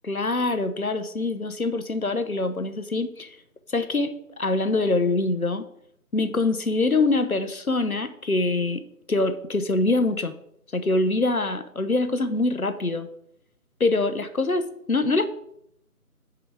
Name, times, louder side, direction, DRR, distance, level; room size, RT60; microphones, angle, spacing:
voice 1, 0.0-3.4 3.7-5.7 6.1-8.8 9.1-10.3 10.7-13.1 13.8-15.3, left 2 dB, 70° left, 11 dB, 0.9 m, -24 dB
7.2 x 5.9 x 4.7 m, 0.74 s
figure-of-eight pair, 175°, 45 cm